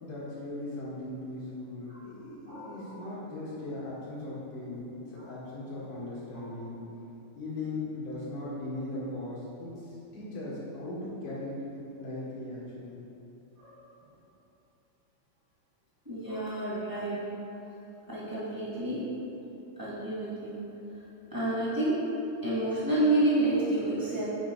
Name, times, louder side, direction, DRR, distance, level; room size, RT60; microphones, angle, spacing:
voice 1, 0.0-6.8 7.3-13.0, left 2 dB, 90° left, -8 dB, 3.2 m, -38 dB
voice 2, 2.5-2.8 5.2-5.3 6.4-6.5 13.6-13.8 16.0-17.2 18.1-19.1 19.8-20.6 21.3-22.0 22.4-24.2, right 2 dB, 20° right, -10 dB, 0.5 m, -29 dB
6.7 x 4.5 x 5.0 m, 2.9 s
omnidirectional pair, 3.4 m